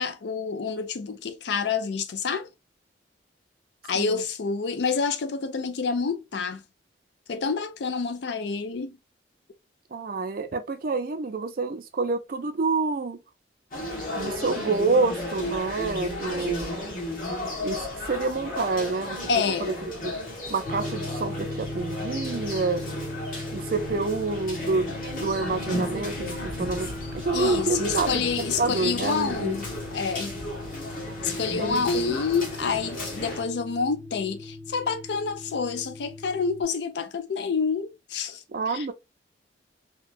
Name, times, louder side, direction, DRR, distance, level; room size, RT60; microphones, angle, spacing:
voice 1, 0.0-2.5 3.9-6.6 7.3-9.0 19.3-19.7 27.3-29.7 29.9-30.3 31.2-38.9, left 5 dB, 70° left, 0.4 m, -28 dB
voice 2, 9.9-13.2 14.2-16.8 17.6-19.2 19.6-19.7 20.0-20.1 20.5-22.8 23.5-29.6 31.6-32.2 38.5-38.9, right 3 dB, 50° right, 0.4 m, -28 dB
sound 1, 13.7-33.4, left 1 dB, 50° left, 1.1 m, -34 dB
sound 2, 20.6-36.6, left 2 dB, 30° left, 0.8 m, -38 dB
2.9 x 2.2 x 2.4 m
head